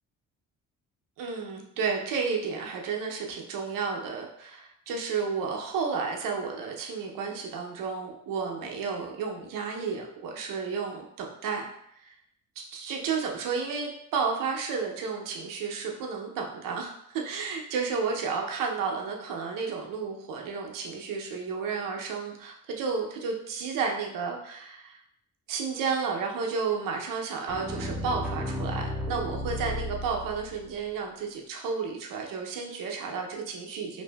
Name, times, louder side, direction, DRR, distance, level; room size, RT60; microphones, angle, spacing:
voice 1, 1.2-11.7 12.0-12.1 12.6-25.0 25.5-34.0, right 5 dB, 75° right, 1 dB, 0.6 m, -32 dB
sound 1, 27.5-30.6, left 1 dB, 5° right, 0.6 m, -33 dB
2.6 x 2.5 x 2.2 m, 0.73 s
cardioid pair, 75°, 33 cm